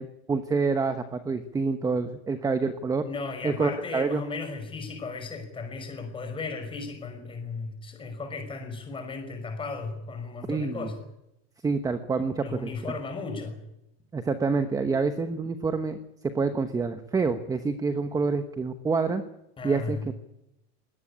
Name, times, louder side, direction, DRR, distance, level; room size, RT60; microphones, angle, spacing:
voice 1, 0.0-3.0 3.4-4.2 10.5-10.9 11.6-12.7 14.1-19.2 19.6-20.1, right 4 dB, 10° right, 9 dB, 1.1 m, -27 dB
voice 2, 3.0-11.0 12.4-13.6 19.6-20.0, left 4 dB, 15° left, 6 dB, 5.8 m, -35 dB
21.5 x 18.0 x 9.9 m, 0.84 s
supercardioid pair, 160°, 33 cm